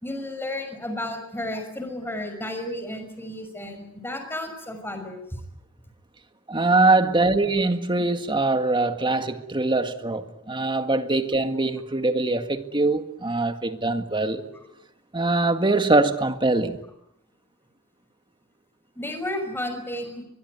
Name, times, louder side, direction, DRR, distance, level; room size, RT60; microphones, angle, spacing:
voice 1, 0.0-5.2 19.0-20.2, left 1 dB, 10° left, 5.9 m, -32 dB
voice 2, 6.5-14.4 15.1-16.8, right 2 dB, 20° right, 1.9 m, -23 dB
23.5 x 22.5 x 9.6 m
head